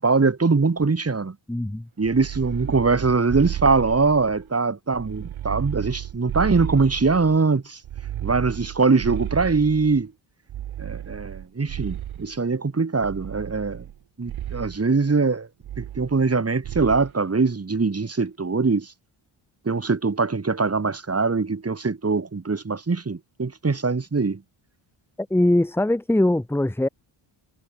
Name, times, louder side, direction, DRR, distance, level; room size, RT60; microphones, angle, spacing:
voice 1, 0.0-1.4 2.0-7.8 8.2-10.1 10.8-13.8 14.2-15.5 15.8-18.9 19.7-24.4, right 4 dB, 30° right, 5.3 m, -22 dB
voice 2, 1.5-1.8 25.3-26.9, left 1 dB, 5° left, 0.9 m, -21 dB
sound 1, 2.0-4.5 4.9-7.4 7.8-10.0 10.5-12.4 13.0-14.0 14.3-14.8 15.6-16.4 16.6-17.1, right 11 dB, 85° right, 2.1 m, -33 dB
cardioid pair, 90°, 47 cm